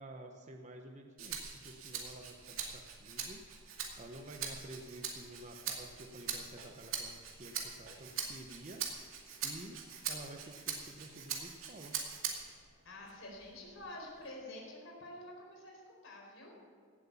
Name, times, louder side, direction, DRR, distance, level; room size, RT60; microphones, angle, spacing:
voice 1, 0.0-3.4 4.0-8.8 9.4-12.0, right 1 dB, 35° right, 3 dB, 0.9 m, -51 dB
Rattle (instrument), 1.2-12.6 13.1-14.3, right 7 dB, 80° right, 2.4 m, -42 dB
voice 2, 12.8-16.5, left 1 dB, 70° left, -1 dB, 4.3 m, -48 dB
17.5 x 8.1 x 7.0 m, 2.1 s
head